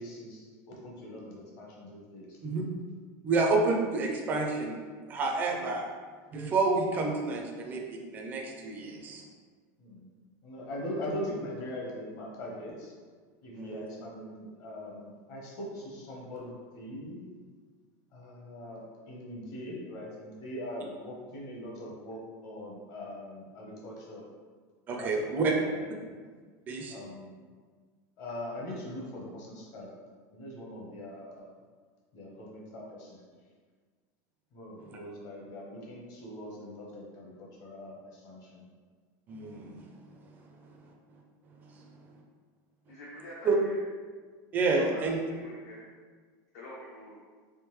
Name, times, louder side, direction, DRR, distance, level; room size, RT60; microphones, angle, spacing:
voice 1, 0.0-2.3 9.8-10.1 10.4-12.9 13.4-17.3 18.1-24.2 24.9-26.2 26.9-27.3 28.2-29.9 30.3-31.5 32.1-33.2 34.5-38.6, left 1 dB, 35° left, -2 dB, 0.8 m, -41 dB
voice 2, 3.2-4.8 5.1-5.9 6.3-9.2 13.5-13.9 24.9-25.5 26.7-26.9 39.3-39.8 43.4-43.6 44.5-45.2, right 3 dB, 20° right, 0 dB, 0.4 m, -29 dB
voice 3, 42.9-43.8 44.8-45.0 45.3-45.9 46.5-47.2, left 1 dB, 65° left, -6 dB, 0.7 m, -46 dB
3.5 x 2.9 x 3.1 m, 1.5 s
supercardioid pair, 175°, 10 cm